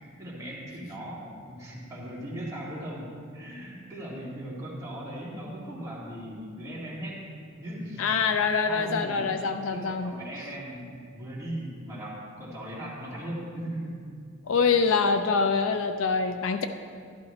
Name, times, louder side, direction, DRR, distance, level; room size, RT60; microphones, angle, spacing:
voice 1, 0.2-7.2 7.6-8.2 8.7-9.4 9.7-14.0, right 1 dB, 15° right, -7 dB, 2.2 m, -38 dB
voice 2, 8.0-10.1 14.5-16.7, left 5 dB, 65° left, 8 dB, 0.4 m, -25 dB
12.0 x 11.5 x 3.2 m, 2.3 s
head